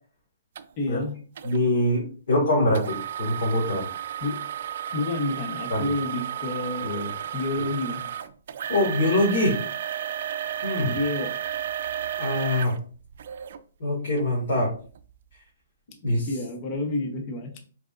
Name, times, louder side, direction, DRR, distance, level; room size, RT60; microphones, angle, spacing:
sound 1, 0.5-0.6 1.4-1.6 2.7-13.6 14.2-14.3 14.9-15.0, right 10 dB, 60° right, 0.4 m, -33 dB
voice 1, 0.8-1.2 4.2-4.4 4.9-6.9 7.3-8.0 10.8-11.3 16.3-17.6, left 2 dB, 30° left, 4 dB, 0.9 m, -29 dB
voice 2, 1.4-3.8 5.7-5.9 6.8-7.1 8.7-9.5 10.6-10.9 12.2-12.7 13.8-14.7 16.0-16.3, left 1 dB, 65° left, -4 dB, 2.1 m, -24 dB
5.0 x 4.1 x 2.5 m, 0.41 s
hypercardioid pair, 155°, 0 cm